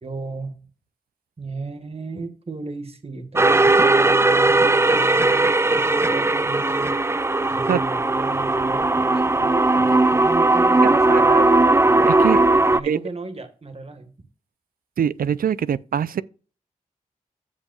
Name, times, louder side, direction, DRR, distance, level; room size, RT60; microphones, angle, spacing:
voice 1, 0.0-0.6 1.4-7.0 7.5-11.5 12.7-14.1, right 3 dB, 45° right, 1.7 m, -35 dB
sound 1, 3.4-12.8, right 2 dB, 20° right, 0.5 m, -18 dB
voice 2, 11.1-11.4 12.1-12.4 12.8-13.0 15.0-16.2, right 8 dB, 80° right, 0.5 m, -23 dB
15.0 x 5.3 x 2.4 m
cardioid pair, 50°, 15 cm